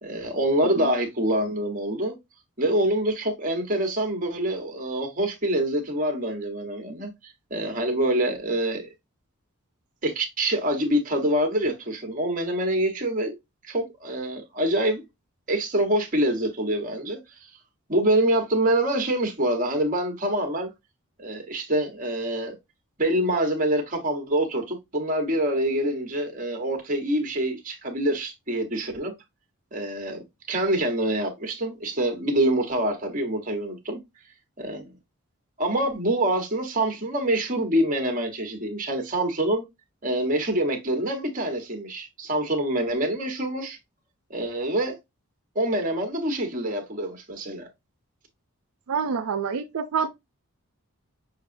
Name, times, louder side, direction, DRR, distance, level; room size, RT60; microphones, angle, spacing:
voice 1, 0.0-2.2 2.6-8.9 10.0-13.4 13.6-15.0 15.5-17.2 17.9-20.7 21.2-22.5 23.0-29.1 29.7-30.2 30.5-34.0 34.6-34.9 35.6-39.6 40.0-43.8 44.3-45.0 45.5-47.7, right 1 dB, 35° right, 1.1 m, -25 dB
voice 2, 48.9-50.1, right 6 dB, 80° right, 0.5 m, -27 dB
6.3 x 2.8 x 2.6 m
head